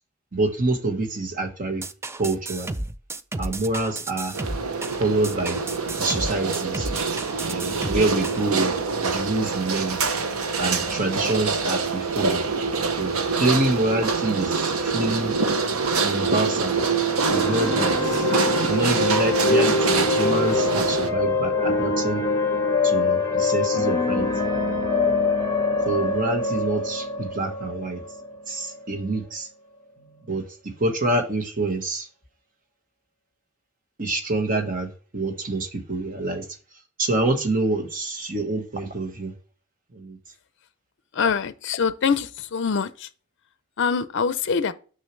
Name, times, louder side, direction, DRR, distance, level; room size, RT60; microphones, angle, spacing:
voice 1, 0.3-1.8 2.2-2.7 3.4-4.3 5.0-5.6 6.0-6.9 7.4-8.7 9.0-10.0 10.6-12.4 13.0-15.3 16.0-16.8 17.3-18.2 18.6-22.2 22.8-24.9 25.8-28.0 28.5-29.5 30.3-32.1 34.0-36.5 37.0-39.3 39.9-40.2, right 2 dB, 40° right, 1.4 m, -26 dB
sound 1, 1.8-8.5, right 2 dB, 10° right, 0.3 m, -32 dB
sound 2, 4.3-21.1, right 4 dB, 90° right, 0.9 m, -25 dB
sound 3, 17.2-28.9, left 3 dB, 15° left, 1.1 m, -24 dB
voice 2, 41.1-43.1 43.8-44.7, left 6 dB, 55° left, 0.5 m, -24 dB
6.4 x 5.6 x 3.2 m
head